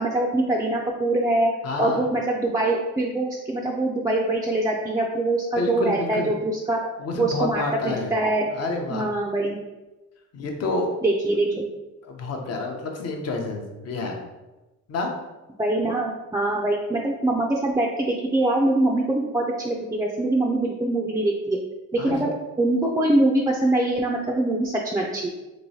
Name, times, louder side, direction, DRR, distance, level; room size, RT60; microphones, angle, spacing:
voice 1, 0.0-1.5 1.8-6.8 7.2-8.5 8.9-9.6 11.0-11.5 15.6-21.6 21.9-22.3 22.6-25.3, right 2 dB, 10° right, -1 dB, 0.3 m, -23 dB
voice 2, 1.6-2.1 5.5-6.3 7.0-8.1 8.5-9.1 10.3-10.9 12.0-14.2 14.9-15.1 22.0-22.3, left 3 dB, 55° left, 3 dB, 0.7 m, -29 dB
3.0 x 3.0 x 2.7 m, 1.1 s
cardioid pair, 85°, 31 cm